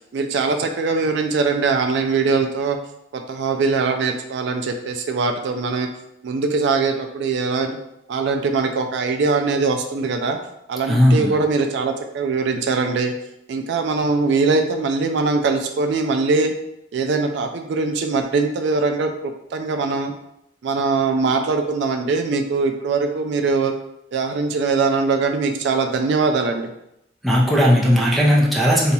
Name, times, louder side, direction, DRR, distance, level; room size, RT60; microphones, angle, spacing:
voice 1, 0.1-2.8 3.1-5.9 6.2-7.8 8.1-10.4 10.7-13.1 13.5-16.5 16.9-20.1 20.6-23.7 24.1-26.7, right 4 dB, 65° right, 5 dB, 0.3 m, -21 dB
voice 2, 10.9-11.4 27.2-28.9, equal, ahead, -3 dB, 0.6 m, -16 dB
2.8 x 2.3 x 4.0 m, 0.82 s
head